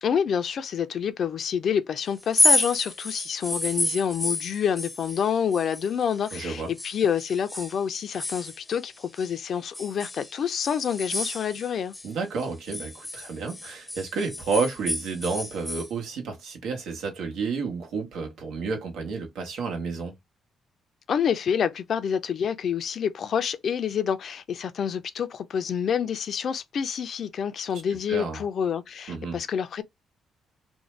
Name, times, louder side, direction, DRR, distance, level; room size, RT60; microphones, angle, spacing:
voice 1, 0.0-11.9 21.1-29.8, left 7 dB, 60° left, 0.4 m, -27 dB
sound 1, 2.2-6.5 6.8-9.3 9.7-12.1 12.4-15.9, left 2 dB, 15° left, 0.6 m, -29 dB
voice 2, 6.3-6.7 12.0-20.2 28.1-28.4 29.1-29.4, right 4 dB, 80° right, 1.0 m, -30 dB
2.6 x 2.1 x 3.1 m
cardioid pair, 90°, 0 cm